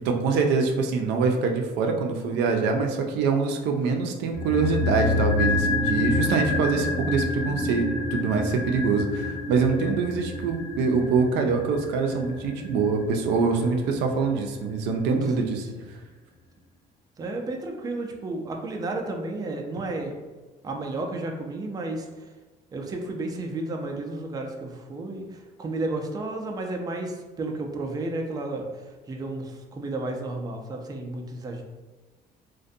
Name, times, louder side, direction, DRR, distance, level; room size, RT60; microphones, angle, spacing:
voice 1, 0.0-15.7, right 4 dB, 90° right, 3 dB, 0.4 m, -24 dB
sound 1, 4.3-14.6 14.8-14.9, left 2 dB, 55° left, 0.5 m, -28 dB
voice 2, 15.4-15.8 17.2-20.1 20.6-22.3 22.7-31.6, right 2 dB, 20° right, 2 dB, 0.3 m, -32 dB
2.5 x 2.1 x 2.6 m, 1.2 s
cardioid pair, 110°, 17 cm